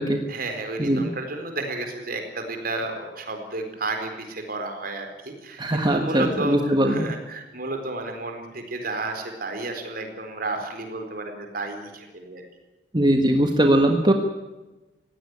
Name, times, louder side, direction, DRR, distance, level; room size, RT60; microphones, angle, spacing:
voice 1, 0.3-12.4, right 2 dB, 55° right, 5 dB, 4.2 m, -32 dB
voice 2, 0.8-1.1 5.6-7.1 12.9-14.1, right 1 dB, 25° right, 4 dB, 1.4 m, -20 dB
19.5 x 16.5 x 9.7 m, 1.1 s
head